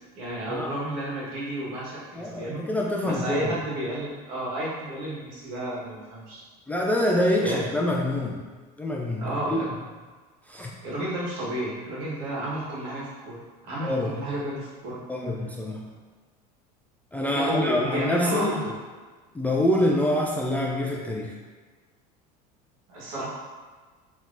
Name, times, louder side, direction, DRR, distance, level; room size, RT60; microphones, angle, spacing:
voice 1, 0.0-2.6 3.0-6.4 7.4-7.6 9.2-9.7 10.8-15.0 17.3-18.7 22.9-23.3, right 1 dB, 65° right, -6 dB, 1.3 m, -31 dB
voice 2, 2.1-3.6 6.7-8.4 8.8-9.6 10.5-10.7 13.8-14.1 15.1-15.9 17.1-18.5 19.3-21.3, left 1 dB, 10° left, -3 dB, 0.3 m, -26 dB
3.6 x 3.0 x 2.5 m, 1.4 s
supercardioid pair, 105°, 20 cm